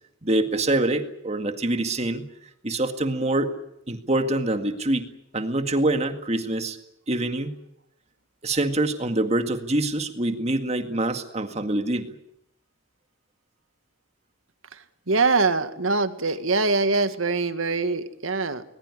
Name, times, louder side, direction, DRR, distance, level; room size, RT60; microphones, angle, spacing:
voice 1, 0.2-2.2 2.6-3.5 3.9-5.1 5.3-6.8 7.1-7.6 8.4-12.1, right 2 dB, 35° right, 7 dB, 2.0 m, -25 dB
voice 2, 15.1-18.6, right 3 dB, 80° right, 10 dB, 1.8 m, -23 dB
21.0 x 20.5 x 9.7 m, 0.80 s
head